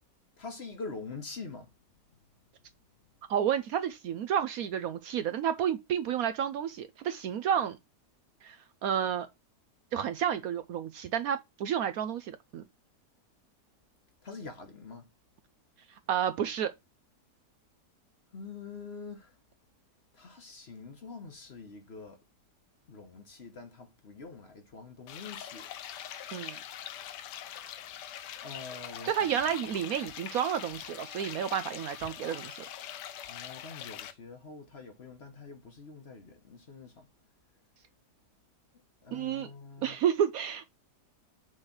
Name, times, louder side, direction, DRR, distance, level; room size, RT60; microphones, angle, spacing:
voice 1, 0.4-1.7 14.2-15.1 18.3-19.3 20.1-22.2 22.9-25.7 28.4-29.4 33.3-37.1 39.0-40.0, left 4 dB, 45° left, 1.2 m, -45 dB
voice 2, 3.3-7.8 8.4-9.3 9.9-12.6 16.1-16.7 26.3-26.6 29.0-32.6 39.1-39.5 39.8-40.7, right 9 dB, 70° right, 0.9 m, -31 dB
sound 1, 25.1-34.1, left 10 dB, 85° left, 1.3 m, -43 dB
6.2 x 3.2 x 5.8 m
omnidirectional pair, 1.8 m